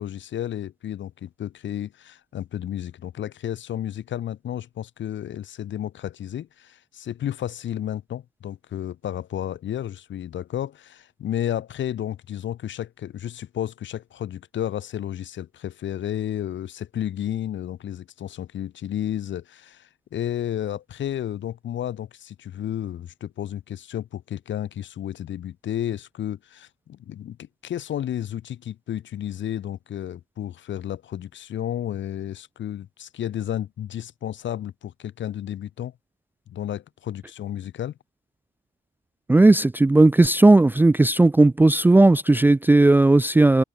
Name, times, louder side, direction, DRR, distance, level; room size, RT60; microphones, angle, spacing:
voice 1, 0.0-35.9 36.5-37.9, left 11 dB, 70° left, 5.1 m, -32 dB
voice 2, 39.3-43.6, right 2 dB, 10° right, 0.4 m, -16 dB
cardioid pair, 90°, 20 cm